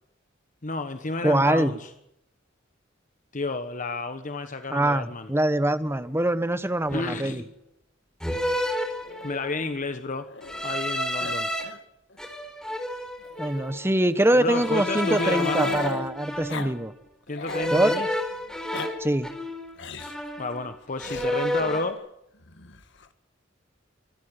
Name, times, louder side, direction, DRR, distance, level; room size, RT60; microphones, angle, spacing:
voice 1, 0.6-1.9 3.3-5.3 6.9-7.4 9.2-10.3 10.6-11.5 14.4-15.7 17.3-18.1 20.4-22.0, left 3 dB, 40° left, 9 dB, 1.2 m, -31 dB
voice 2, 1.2-1.7 4.7-7.4 13.4-16.9 17.7-17.9 19.0-19.3, right 1 dB, 15° right, 13 dB, 1.1 m, -23 dB
sound 1, 5.8-6.0 6.9-7.4 8.2-9.6 10.4-11.6 12.2-13.7 14.5-16.9 17.5-19.7 20.0-20.7 21.0-21.9, equal, 5° left, 4.4 m, -31 dB
Growling, 9.0-10.9 11.2-11.4 11.6-11.8 12.1-12.2 13.2-16.1 16.5-16.7 17.1-17.8 18.5-18.9 19.8-20.2 21.0-21.3 22.4-23.1, left 4 dB, 65° left, 1.8 m, -38 dB
24.5 x 14.0 x 9.7 m, 0.79 s
head